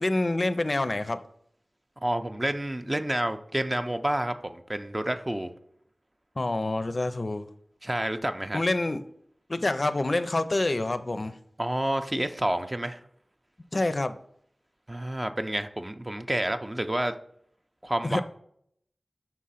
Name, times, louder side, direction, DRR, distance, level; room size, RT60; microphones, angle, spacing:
voice 1, 0.0-1.2 6.4-7.5 8.5-9.0 9.5-11.3 13.7-14.2 18.0-18.2, left 2 dB, 45° left, 10 dB, 0.4 m, -27 dB
voice 2, 2.0-5.5 7.8-8.6 11.6-13.0 14.9-17.1 17.8-18.2, right 1 dB, 25° right, 8 dB, 0.5 m, -29 dB
5.9 x 3.7 x 5.6 m, 0.67 s
wide cardioid pair, 70°, 0 cm